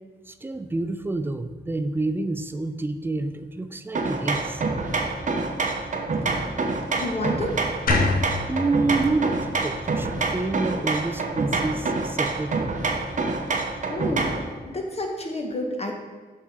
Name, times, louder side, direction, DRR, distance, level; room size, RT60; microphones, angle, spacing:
voice 1, 0.3-4.6 8.5-12.7, right 3 dB, 10° right, 10 dB, 0.4 m, -28 dB
sound 1, 3.9-14.5, right 3 dB, 45° right, 0.8 m, -27 dB
voice 2, 7.0-7.5 13.4-13.6 13.9-14.4 14.7-15.9, left 1 dB, 35° left, 2 dB, 1.1 m, -30 dB
sound 2, 7.9-11.0, left 4 dB, 55° left, 0.8 m, -28 dB
7.2 x 5.6 x 3.7 m, 1.4 s
wide cardioid pair, 110°, 18 cm